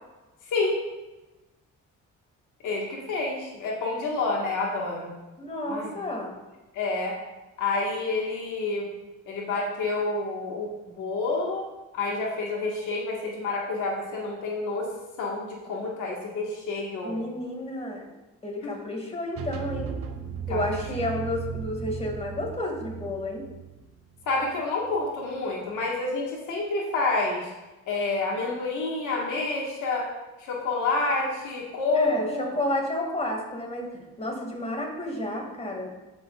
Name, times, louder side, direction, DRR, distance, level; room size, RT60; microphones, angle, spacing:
voice 1, 0.5-0.8 2.6-5.1 5.7-6.0 6.7-7.2 7.6-8.9 9.2-10.7 10.9-11.7 11.9-14.9 15.2-17.2 18.6-18.7 20.5-20.8 24.3-27.5 27.9-30.1 30.4-32.4, left 3 dB, 85° left, -2 dB, 1.7 m, -28 dB
voice 2, 5.4-6.4 17.0-18.0 18.4-19.9 20.5-23.4 31.9-35.9, left 1 dB, 20° left, 0 dB, 2.2 m, -31 dB
sound 1, 19.3-25.0, right 8 dB, 50° right, 0.9 m, -36 dB
12.0 x 6.2 x 2.4 m, 1.1 s
cardioid pair, 90°, 30 cm